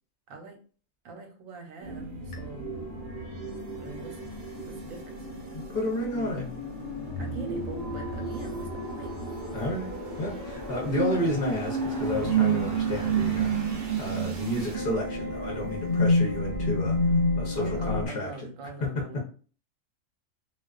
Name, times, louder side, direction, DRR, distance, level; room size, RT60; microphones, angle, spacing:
voice 1, 0.3-0.6 1.0-2.7 3.8-5.3 7.2-9.1 17.6-19.2, right 3 dB, 85° right, 3 dB, 1.0 m, -43 dB
sound 1, 1.8-18.1, right 1 dB, 55° right, 0.8 m, -30 dB
sound 2, 2.3-13.2, left 7 dB, 80° left, 0.9 m, -46 dB
voice 2, 5.7-6.5 9.5-13.5 14.0-17.0 17.4-18.3 18.8-18.9, left 1 dB, 50° left, -1 dB, 0.7 m, -31 dB
2.3 x 2.3 x 2.3 m, 0.40 s
omnidirectional pair, 1.4 m